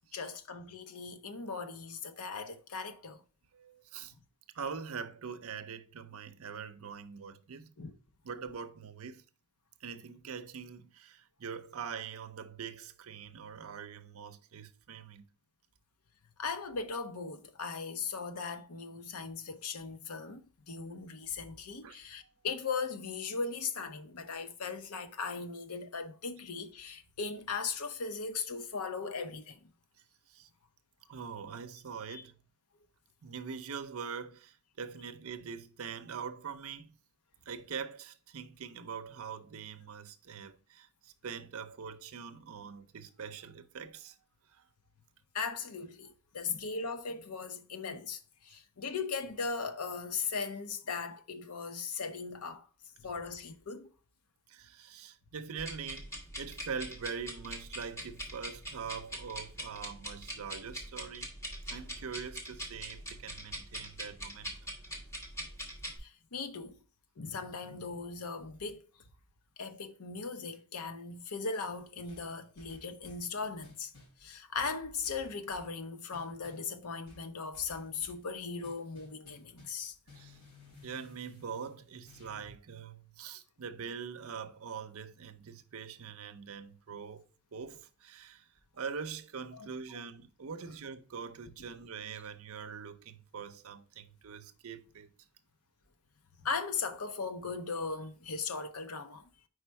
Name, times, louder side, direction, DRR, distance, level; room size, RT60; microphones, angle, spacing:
voice 1, 0.1-3.2 4.1-4.2 7.8-7.9 16.4-29.7 32.1-32.2 45.3-52.7 53.0-53.9 66.0-66.8 67.2-68.8 69.6-73.9 74.2-80.0 89.5-89.7 96.4-99.3, left 5 dB, 85° left, 0.7 m, -38 dB
voice 2, 3.5-4.1 4.5-7.7 8.2-9.2 9.8-15.2 21.8-22.0 30.3-30.5 31.1-32.3 33.2-36.9 37.5-44.2 44.5-44.6 54.5-61.3 61.7-64.7 80.1-80.4 80.8-87.2 87.5-88.5 88.7-95.1, right 6 dB, 70° right, 0.6 m, -43 dB
sound 1, 55.6-66.0, equal, 15° left, 1.2 m, -43 dB
sound 2, 72.1-73.3 73.6-74.2 74.6-75.8 76.1-76.7 77.1-78.3 78.6-79.8 80.1-82.6, left 2 dB, 65° left, 3.2 m, -57 dB
4.8 x 4.3 x 4.6 m
head